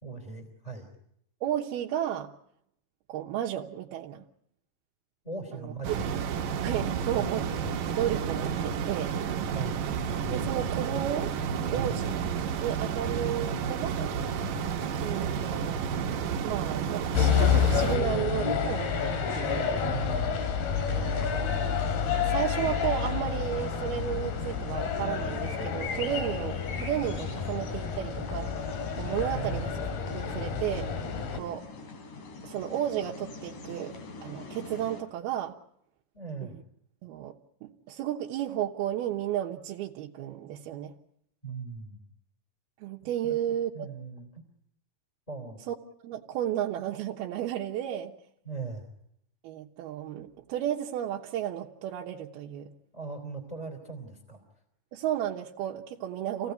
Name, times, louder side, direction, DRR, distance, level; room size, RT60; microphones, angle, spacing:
voice 1, 0.0-0.9 5.2-6.1 7.1-7.3 9.5-9.9 11.7-12.0 19.8-20.5 20.9-21.1 29.3-29.7 36.1-36.5 41.4-42.0 43.2-43.4 43.7-44.4 45.3-45.6 48.4-48.9 52.9-54.4, right 4 dB, 10° left, 3 dB, 3.1 m, -39 dB
voice 2, 1.4-2.3 3.1-4.2 5.6-5.7 6.6-7.4 8.0-9.2 10.3-11.3 11.7-12.1 12.6-14.2 15.0-15.8 16.4-19.7 20.9-21.3 22.2-29.7 30.1-31.0 31.3-31.6 32.4-33.9 34.2-35.5 36.4-36.6 37.0-37.4 37.6-41.0 42.8-43.9 45.7-45.8 46.0-48.1 49.4-52.7 54.9-56.5, right 11 dB, 85° right, -1 dB, 3.1 m, -33 dB
sound 1, 5.8-18.0, right 7 dB, 65° right, 2.8 m, -31 dB
sound 2, 17.1-31.4, left 7 dB, 85° left, 4.3 m, -29 dB
sound 3, 20.7-35.0, left 4 dB, 55° left, 4.3 m, -44 dB
28.0 x 17.0 x 9.5 m, 0.77 s
omnidirectional pair, 4.3 m